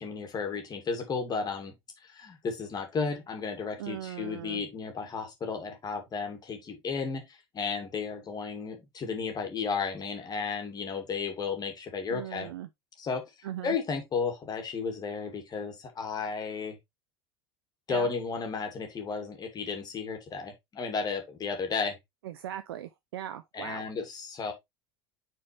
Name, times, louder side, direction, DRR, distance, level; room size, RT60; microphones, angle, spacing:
voice 1, 0.0-1.7 2.0-12.5 13.0-16.8 17.9-22.0 23.5-24.5, left 5 dB, 30° left, 2.3 m, -33 dB
voice 2, 3.8-4.6 12.1-12.7 13.4-13.8 17.9-18.1 22.2-23.9, right 11 dB, 70° right, 0.5 m, -39 dB
8.3 x 4.5 x 3.2 m
figure-of-eight pair, 75°, 13 cm